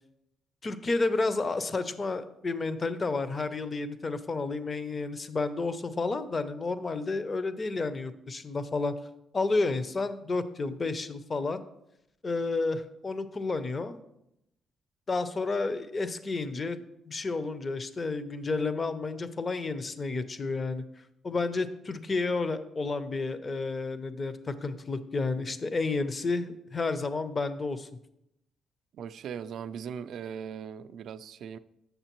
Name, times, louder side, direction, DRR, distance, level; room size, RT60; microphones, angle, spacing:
voice 1, 0.6-8.9 9.3-11.6 12.2-14.0 15.1-16.8 17.1-20.8 21.2-27.9, left 3 dB, 35° left, 0.5 m, -31 dB
voice 2, 28.9-31.6, right 7 dB, 70° right, 0.3 m, -39 dB
7.9 x 6.4 x 3.0 m
cardioid pair, 90°, 0 cm